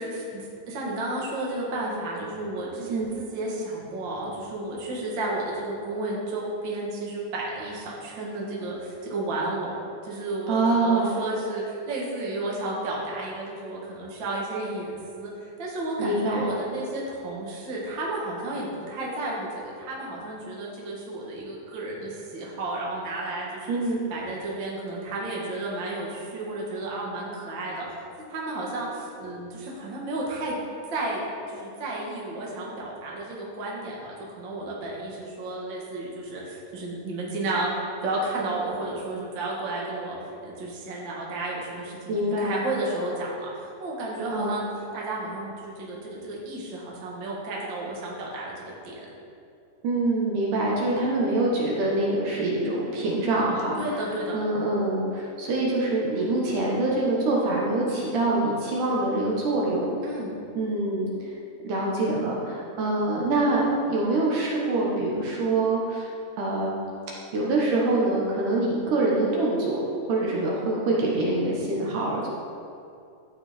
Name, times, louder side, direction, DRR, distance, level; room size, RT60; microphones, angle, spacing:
voice 1, 0.0-9.7 10.0-23.8 24.1-27.9 28.3-30.6 30.9-40.2 40.4-44.6 44.9-48.5 48.8-48.9 53.8-54.4 60.0-60.3, right 2 dB, 45° right, -4 dB, 1.8 m, -32 dB
voice 2, 10.5-11.1 16.0-16.5 23.7-24.0 42.1-42.6 44.3-44.6 49.8-54.0 54.3-59.9 60.6-61.1 61.6-66.1 66.4-66.8 67.3-69.8 70.1-72.3, right 2 dB, 65° right, -4 dB, 2.6 m, -25 dB
13.5 x 5.4 x 4.4 m, 2.5 s
omnidirectional pair, 4.1 m